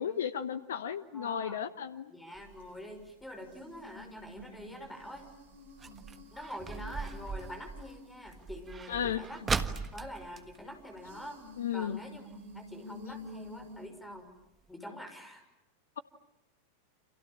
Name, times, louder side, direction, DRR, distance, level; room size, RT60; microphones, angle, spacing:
voice 1, 0.0-2.1 8.9-9.2 11.6-12.0, left 8 dB, 60° left, 13 dB, 1.0 m, -34 dB
voice 2, 1.1-1.6 2.1-5.3 6.3-11.4 11.7-12.3 12.5-14.3 14.7-15.4, equal, 5° left, 5 dB, 6.1 m, -45 dB
sound 1, 2.3-11.6 11.9-12.0 12.3-12.6 13.2-13.3 13.8-13.9 14.2-14.3 14.6-14.7, right 5 dB, 15° right, 1.5 m, -40 dB
sound 2, 2.3-2.6 3.4-8.7 9.2-13.9, left 2 dB, 60° right, 4.1 m, -51 dB
29.5 x 27.5 x 7.3 m, 0.91 s
figure-of-eight pair, 90°, 0 cm